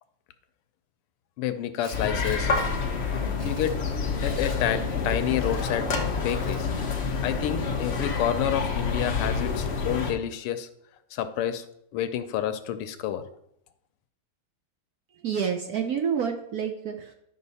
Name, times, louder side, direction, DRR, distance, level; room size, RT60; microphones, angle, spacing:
voice 1, 1.4-2.5 3.4-3.7 4.2-5.9 6.2-6.7 7.2-10.7 11.1-11.6 11.9-13.2, left 10 dB, 90° left, 10 dB, 1.7 m, -29 dB
Tools, 1.8-2.7 3.1-3.8 4.2-4.6 5.3-5.7 6.2-6.7, equal, 15° right, 3.8 m, -48 dB
sound 1, 1.9-10.1, left 4 dB, 45° left, 0.8 m, -28 dB
voice 2, 15.1-17.1, right 7 dB, 75° right, 5 dB, 0.8 m, -28 dB
11.0 x 5.6 x 4.1 m, 0.76 s
omnidirectional pair, 2.4 m